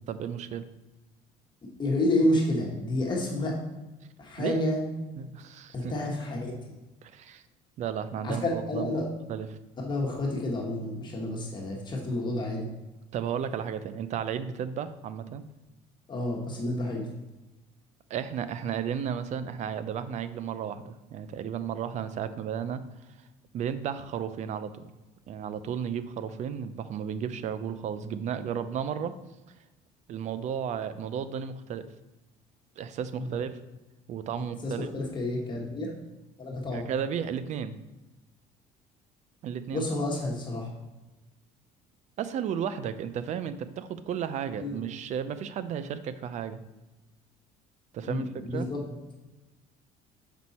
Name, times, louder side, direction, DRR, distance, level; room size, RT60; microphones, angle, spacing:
voice 1, 0.1-0.6 4.4-4.6 5.2-5.9 7.0-7.4 7.8-8.9 9.3-9.6 13.1-15.4 18.1-22.8 23.5-24.9 25.3-29.1 30.1-31.9 32.8-33.6 34.1-34.9 36.7-37.7 39.4-39.8 42.2-46.6 47.9-48.7, right 8 dB, 50° right, 13 dB, 0.5 m, -33 dB
voice 2, 1.6-3.6 4.2-4.8 5.7-6.7 8.2-9.1 9.8-12.7 16.1-17.1 33.2-33.3 34.3-35.9 36.4-36.8 39.7-40.7 44.6-44.8 48.0-48.8, left 1 dB, 30° left, -1 dB, 1.4 m, -30 dB
6.2 x 5.3 x 4.2 m, 1.1 s
cardioid pair, 110°, 15 cm